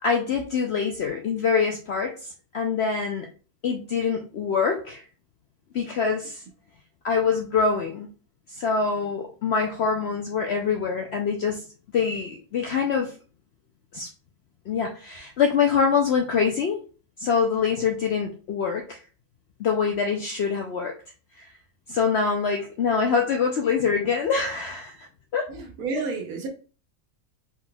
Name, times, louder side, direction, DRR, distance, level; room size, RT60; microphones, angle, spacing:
voice 1, 0.0-3.3 3.6-5.0 5.7-6.4 7.0-8.1 8.6-11.6 11.9-13.1 13.9-14.1 14.7-16.8 17.2-19.0 19.6-20.9 21.4-21.5 21.9-25.1 25.3-25.5, left 5 dB, 65° left, 0.6 m, -25 dB
voice 2, 25.5-26.5, right 4 dB, 70° right, 1.3 m, -30 dB
4.4 x 3.8 x 2.2 m
omnidirectional pair, 1.6 m